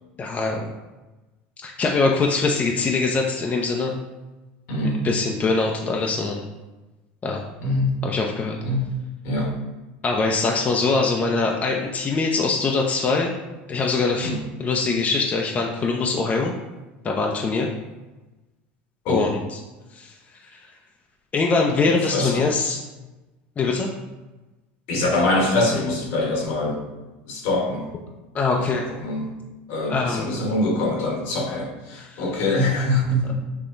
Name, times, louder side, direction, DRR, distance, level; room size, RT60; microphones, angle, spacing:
voice 1, 0.2-0.7 1.6-4.0 5.0-6.4 7.2-7.4 8.0-8.6 10.0-13.3 13.7-14.3 14.6-16.5 17.0-17.7 19.1-19.4 19.9-20.1 20.5-20.6 21.3-22.8 23.6-23.9 28.3-28.8 29.9-30.3 31.9-32.2, left 3 dB, 30° left, 1 dB, 0.6 m, -23 dB
voice 2, 4.7-5.0 7.6-7.9 8.6-8.9 9.2-9.5 14.2-14.4 19.0-19.3 21.8-22.4 24.9-26.8 27.3-27.9 28.5-29.3 29.7-33.3, left 2 dB, 70° left, 0 dB, 1.3 m, -24 dB
6.8 x 2.8 x 2.6 m, 1.1 s
supercardioid pair, 100°, 5 cm